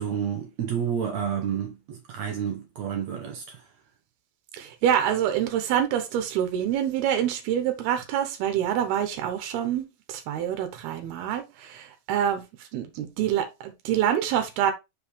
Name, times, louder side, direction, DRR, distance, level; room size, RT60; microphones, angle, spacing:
voice 1, 0.0-3.6, right 8 dB, 65° right, 1.7 m, -30 dB
voice 2, 4.5-12.4 12.7-14.7, right 10 dB, 90° right, 3.1 m, -26 dB
6.4 x 5.1 x 3.3 m
omnidirectional pair, 4.4 m